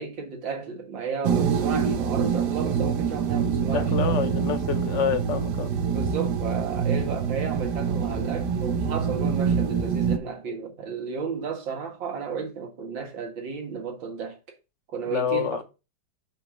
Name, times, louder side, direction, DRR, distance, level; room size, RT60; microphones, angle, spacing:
voice 1, 0.0-3.9 5.9-14.4 14.9-15.6, right 5 dB, 90° right, 2.4 m, -33 dB
sound 1, 1.2-10.2, right 6 dB, 70° right, 1.4 m, -25 dB
voice 2, 3.7-5.7 15.1-15.6, left 7 dB, 55° left, 0.9 m, -27 dB
5.4 x 4.4 x 6.1 m
omnidirectional pair, 2.0 m